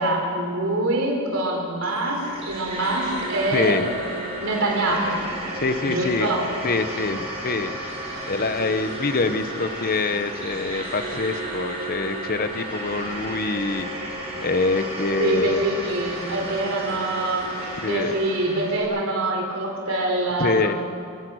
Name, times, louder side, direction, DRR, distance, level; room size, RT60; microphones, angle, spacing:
voice 1, 0.0-4.1 4.4-5.3 5.8-6.4 15.2-17.5 17.9-20.8, right 2 dB, 70° right, 0 dB, 4.3 m, -25 dB
sound 1, 1.8-18.8, right 1 dB, 30° right, 5.1 m, -33 dB
voice 2, 3.5-3.9 5.5-6.3 6.6-7.7 8.3-13.9 14.4-15.6 17.8-18.2 20.4-20.8, left 3 dB, 45° left, 10 dB, 1.0 m, -25 dB
29.5 x 16.0 x 6.3 m, 2.4 s
head